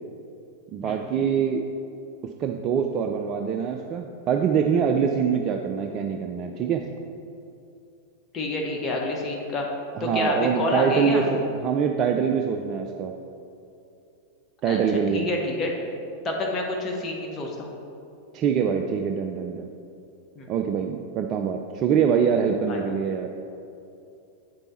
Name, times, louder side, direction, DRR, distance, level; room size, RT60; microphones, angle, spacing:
voice 1, 0.7-1.6 2.4-6.8 9.9-13.1 14.6-15.3 18.3-19.7 20.5-23.3, right 7 dB, 35° right, 4 dB, 0.4 m, -24 dB
voice 2, 8.3-9.7 10.0-11.3 14.7-14.8 15.1-15.7 16.2-17.7 20.3-20.5 22.7-22.8, left 2 dB, 25° left, -1 dB, 1.0 m, -28 dB
8.1 x 5.2 x 4.3 m, 2.6 s
figure-of-eight pair, 90°, 0 cm